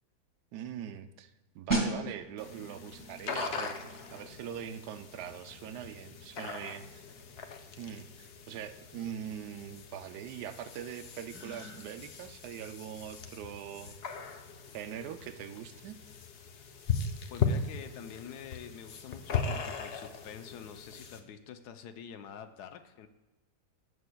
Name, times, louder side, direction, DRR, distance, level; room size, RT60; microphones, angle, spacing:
voice 1, 0.5-7.0 7.8-14.0 14.7-16.0, right 9 dB, 80° right, 10 dB, 1.2 m, -42 dB
sound 1, 1.7-12.2 12.5-12.7, right 2 dB, 10° left, 1.6 m, -41 dB
sound 2, 2.4-21.2, left 5 dB, 60° left, 0.6 m, -39 dB
Gasp, 11.3-11.8, right 1 dB, 45° left, 2.9 m, -48 dB
voice 2, 17.3-23.1, left 8 dB, 75° left, 9 dB, 1.1 m, -46 dB
16.0 x 6.3 x 2.2 m, 1.1 s
omnidirectional pair, 1.7 m